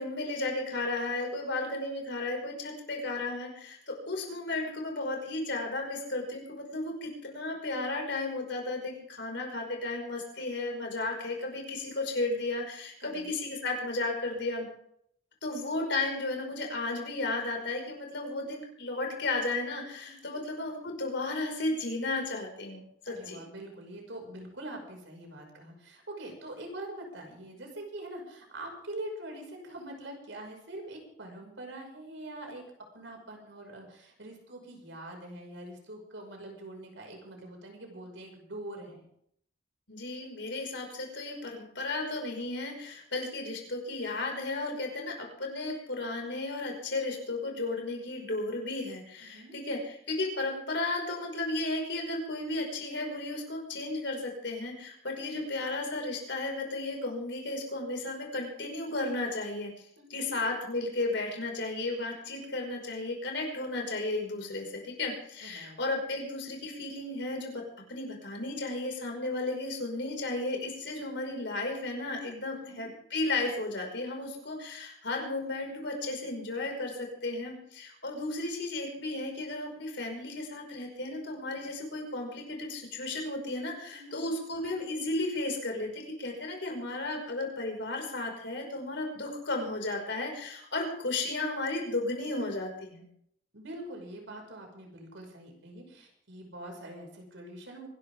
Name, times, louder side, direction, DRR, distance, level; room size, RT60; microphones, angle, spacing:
voice 1, 0.0-14.7 15.4-23.4 39.9-59.7 60.1-67.6 67.9-93.0, left 2 dB, 65° left, 2 dB, 5.5 m, -34 dB
voice 2, 20.0-20.4 23.1-32.6 32.9-39.0 49.2-49.6 55.2-55.4 60.0-60.4 65.4-65.8 72.6-72.9 83.9-84.3 93.5-97.9, right 1 dB, 75° right, 2 dB, 5.7 m, -44 dB
25.5 x 12.0 x 3.7 m, 0.68 s
head